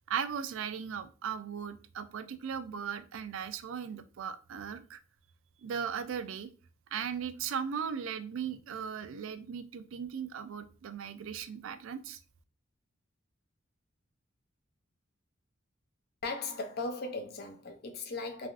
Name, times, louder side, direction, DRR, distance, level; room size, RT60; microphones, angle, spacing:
voice 1, 0.1-5.0 5.6-6.5 6.9-12.2, right 7 dB, 80° right, 0.4 m, -37 dB
voice 2, 16.2-18.5, left 3 dB, 55° left, 0.6 m, -37 dB
3.3 x 2.5 x 2.4 m
head